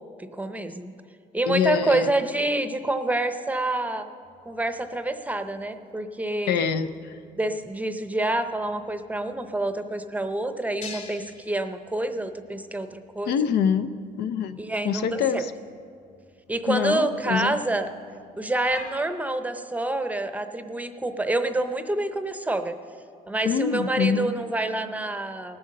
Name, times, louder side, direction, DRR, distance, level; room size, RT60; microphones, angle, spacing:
voice 1, 0.3-0.9 1.3-4.1 4.5-6.6 7.3-13.3 14.6-15.4 16.5-17.9 18.4-22.8 23.3-25.6, right 2 dB, 10° right, 9 dB, 0.7 m, -27 dB
voice 2, 1.5-2.1 6.5-7.1 13.3-13.9 14.2-15.5 16.7-17.6 23.4-24.3, left 7 dB, 75° left, 11 dB, 0.6 m, -25 dB
sound 1, 4.2-19.0, left 5 dB, 45° left, 3.9 m, -50 dB
18.0 x 7.8 x 6.5 m, 2.4 s
cardioid pair, 110°, 17 cm